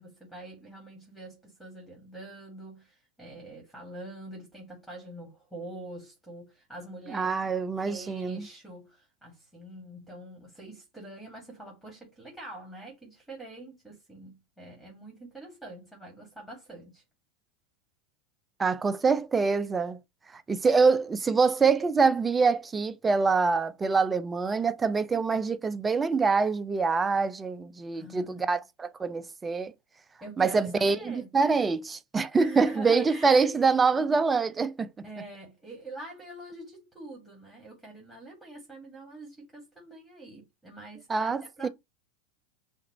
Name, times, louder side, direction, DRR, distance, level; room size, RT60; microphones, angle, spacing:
voice 1, 0.0-7.5 7.8-17.0 27.9-28.5 30.2-31.3 32.3-33.5 35.0-41.3 41.6-41.7, right 2 dB, ahead, 2.2 m, -45 dB
voice 2, 7.1-8.4 18.6-20.0 20.5-29.7 30.4-34.9 41.1-41.7, right 4 dB, 20° right, 0.5 m, -25 dB
5.7 x 2.6 x 3.0 m
hypercardioid pair, 95°, 0 cm